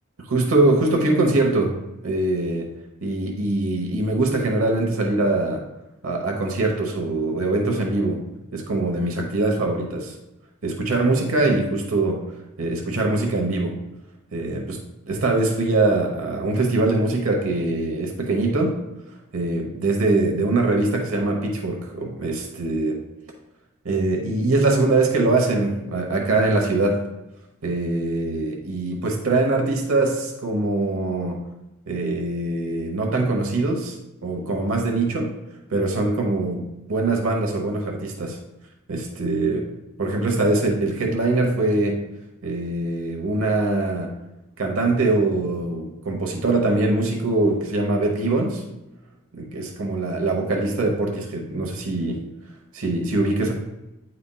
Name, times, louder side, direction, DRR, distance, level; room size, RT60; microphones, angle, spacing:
voice 1, 0.3-1.8 2.0-2.7 3.0-5.6 6.0-8.2 8.5-10.1 10.6-12.2 12.6-13.8 14.3-14.8 15.1-18.8 19.3-23.0 23.8-27.0 27.6-31.4 31.9-34.0 34.2-35.3 35.7-38.4 38.9-39.6 40.0-42.0 42.4-44.1 44.6-48.6 49.3-52.2 52.7-53.5, right 2 dB, 85° right, 2 dB, 1.0 m, -22 dB
9.7 x 4.3 x 2.2 m, 0.97 s
head